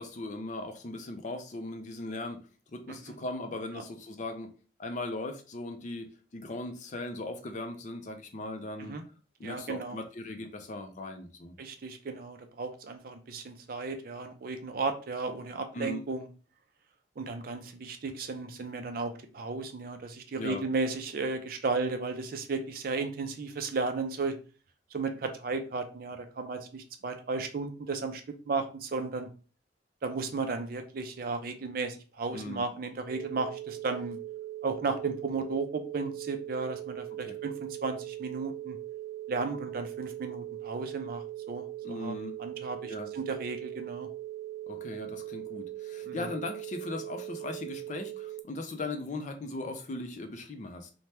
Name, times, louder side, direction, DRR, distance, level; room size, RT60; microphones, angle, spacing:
voice 1, 0.0-4.5 4.8-9.0 9.4-11.5 15.7-16.0 20.3-20.6 32.3-32.6 37.3-37.4 41.8-42.4 42.8-43.1 44.7-50.9, left 2 dB, 40° left, 6 dB, 0.4 m, -38 dB
voice 2, 9.4-10.0 11.6-16.3 17.2-24.3 24.9-29.3 30.0-34.2 34.6-38.8 39.3-42.1 42.4-44.1 46.1-46.3, right 4 dB, 50° right, 7 dB, 0.4 m, -34 dB
sound 1, 33.1-48.4, right 14 dB, 85° right, 0.7 m, -40 dB
2.8 x 2.1 x 3.2 m, 0.36 s
head